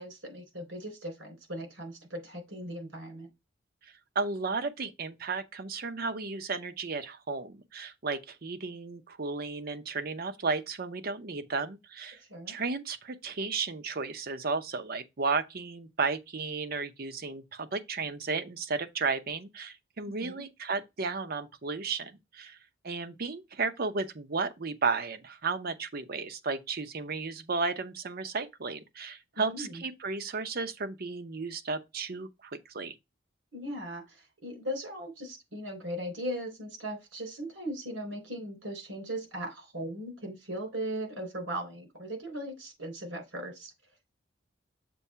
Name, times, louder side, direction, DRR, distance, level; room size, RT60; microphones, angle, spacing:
voice 1, 0.0-3.3 12.3-12.5 20.1-20.4 29.5-29.8 33.5-43.7, right 1 dB, 90° right, 3.7 m, -38 dB
voice 2, 4.1-12.2 12.5-22.6 22.8-32.9, right 4 dB, 50° right, 0.7 m, -34 dB
6.9 x 2.7 x 5.5 m
head